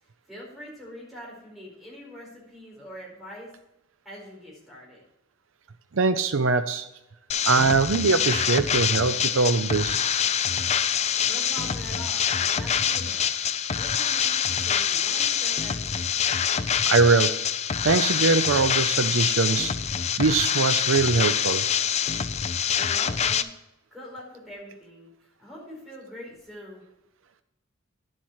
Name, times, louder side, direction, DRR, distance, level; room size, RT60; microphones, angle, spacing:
voice 1, 0.2-3.5 4.0-5.0 11.2-13.2 13.7-16.1 22.7-23.5 23.9-25.1 25.4-26.9, equal, ahead, -4 dB, 4.6 m, -43 dB
voice 2, 5.9-6.9 7.4-10.0 16.9-17.3 17.8-19.7 20.2-21.6, right 4 dB, 70° right, 11 dB, 0.6 m, -22 dB
sound 1, 7.3-23.4, left 8 dB, 30° left, 0.4 m, -25 dB
11.0 x 7.5 x 4.7 m, 0.89 s
head